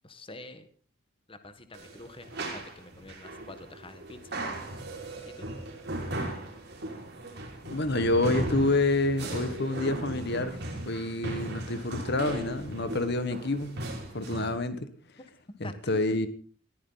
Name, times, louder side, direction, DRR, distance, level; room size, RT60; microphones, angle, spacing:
voice 1, 0.0-0.7 1.3-4.4 5.2-5.5 15.6-16.0, left 2 dB, 25° left, 10 dB, 1.5 m, -47 dB
sound 1, 1.7-14.6, right 1 dB, 55° right, 5.3 m, -37 dB
voice 2, 7.6-10.6 10.8-13.8 14.1-14.9 15.6-16.3, left 2 dB, 55° left, 12 dB, 1.5 m, -28 dB
20.5 x 15.0 x 4.0 m, 0.43 s
head